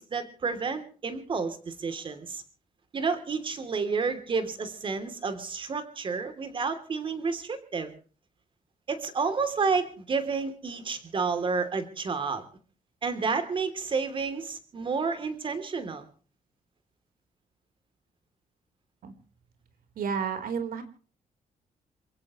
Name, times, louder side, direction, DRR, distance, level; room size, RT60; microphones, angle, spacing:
voice 1, 0.0-2.4 2.9-7.9 8.9-12.4 13.0-16.0, right 4 dB, 35° right, 9 dB, 3.1 m, -30 dB
voice 2, 20.0-20.8, right 6 dB, 80° right, 8 dB, 4.1 m, -31 dB
28.0 x 16.5 x 3.1 m, 0.41 s
wide cardioid pair, 180°, 15 cm